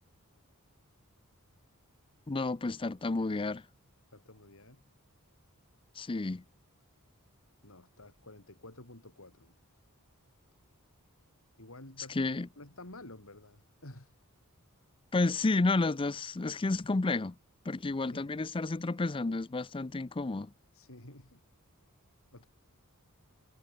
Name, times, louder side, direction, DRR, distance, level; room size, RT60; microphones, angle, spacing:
voice 1, 2.3-3.6 6.0-6.4 12.1-12.5 15.1-17.4 17.7-20.5, left 3 dB, 25° left, 0.5 m, -31 dB
voice 2, 4.1-4.8 7.6-9.5 11.6-14.2 18.1-18.3 20.7-21.4 22.3-22.5, left 2 dB, 65° left, 5.2 m, -51 dB
head